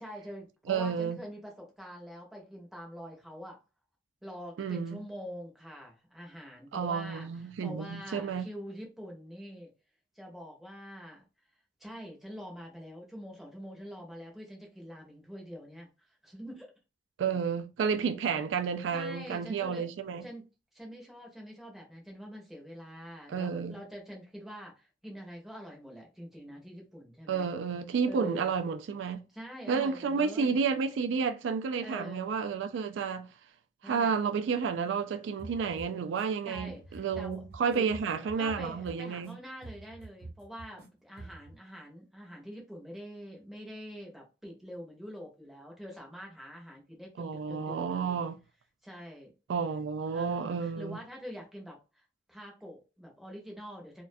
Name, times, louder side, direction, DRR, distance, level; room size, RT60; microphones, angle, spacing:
voice 1, 0.0-3.6 4.2-9.7 10.2-11.2 11.8-15.9 16.2-16.7 18.2-18.3 18.9-19.9 20.2-20.4 20.7-27.5 28.1-28.5 29.3-30.6 31.8-32.3 33.8-34.2 36.5-37.4 37.7-48.2 48.8-49.3 50.1-54.0, equal, ahead, 0.6 m, -45 dB
voice 2, 0.7-1.2 4.6-5.0 6.7-8.5 17.2-20.2 23.3-23.8 27.3-29.2 29.7-33.3 33.8-39.4 47.2-48.4 49.5-51.0, right 6 dB, 85° right, 0.3 m, -31 dB
sound 1, 35.4-36.2 36.5-39.3 39.6-40.9 41.2-41.6, right 2 dB, 55° right, 0.7 m, -47 dB
2.3 x 2.2 x 2.5 m
head